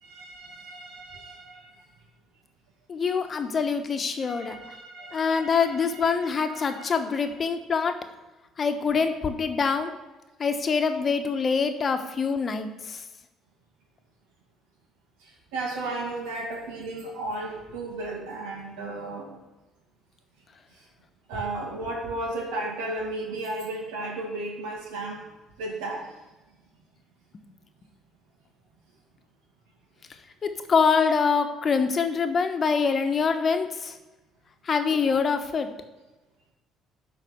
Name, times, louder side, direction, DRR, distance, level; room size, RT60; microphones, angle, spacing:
voice 1, 0.0-1.7 4.2-6.8 15.5-19.3 21.3-25.3 25.6-26.1 34.9-35.0, right 2 dB, 85° right, 0 dB, 2.0 m, -34 dB
voice 2, 2.9-4.6 5.1-7.9 8.6-9.9 10.4-13.0 30.4-34.0 34.6-35.7, left 5 dB, 45° left, 6 dB, 1.0 m, -25 dB
11.0 x 4.1 x 5.8 m, 1.1 s
supercardioid pair, 65°, 0 cm